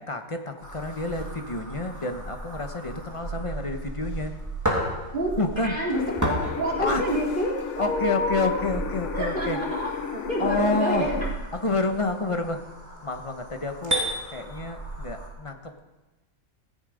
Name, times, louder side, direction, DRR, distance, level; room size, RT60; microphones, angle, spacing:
voice 1, 0.0-4.3 5.4-5.8 6.8-7.1 7.8-9.6 10.0-10.1 10.4-11.1 11.5-12.6 12.9-14.0 14.3-15.8, left 3 dB, 25° left, 6 dB, 1.2 m, -29 dB
sound 1, 0.6-15.3, right 1 dB, 10° right, 2.9 m, -34 dB
voice 2, 5.6-8.6 9.1-9.9 10.2-11.1, equal, 35° right, -3 dB, 4.1 m, -28 dB
sound 2, 5.9-11.3, left 8 dB, 60° left, 1.0 m, -34 dB
16.0 x 15.5 x 5.2 m, 1.1 s
omnidirectional pair, 1.5 m